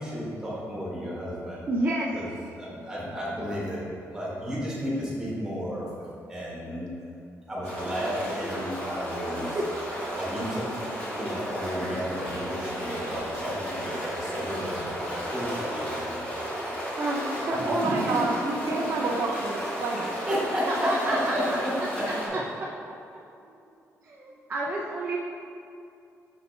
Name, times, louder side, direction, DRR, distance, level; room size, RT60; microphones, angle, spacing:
voice 1, 0.0-1.7 2.1-3.8 4.1-5.9 6.3-6.9 7.5-9.6 10.1-10.7 11.2-16.5 17.5-18.2 18.6-19.0 19.9-22.4, equal, 10° right, -6 dB, 1.3 m, -33 dB
voice 2, 1.7-2.2 8.0-8.3 9.5-9.6 17.0-18.1 20.7-21.6 24.0-25.2, right 1 dB, 30° right, -3 dB, 0.4 m, -29 dB
sound 1, 7.6-22.3, equal, 25° left, 1.4 m, -34 dB
voice 3, 17.5-20.1, right 3 dB, 70° right, 0 dB, 0.6 m, -29 dB
5.9 x 5.5 x 3.2 m, 2.6 s
wide cardioid pair, 180°, 6 cm